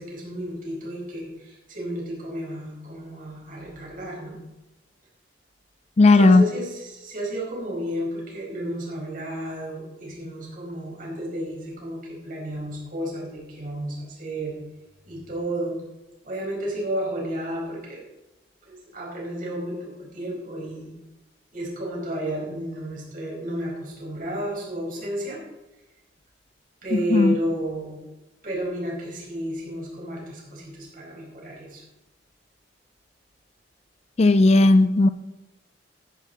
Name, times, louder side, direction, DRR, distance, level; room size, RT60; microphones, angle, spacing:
voice 1, 0.0-4.4 6.1-14.6 15.1-15.8 16.2-18.0 18.7-20.9 21.5-25.4 26.8-28.0 28.4-31.8, equal, 45° right, -3 dB, 4.9 m, -32 dB
voice 2, 6.0-6.4 27.1-27.3 34.2-35.1, left 2 dB, 35° left, 14 dB, 0.4 m, -15 dB
14.5 x 10.5 x 3.9 m, 0.99 s
head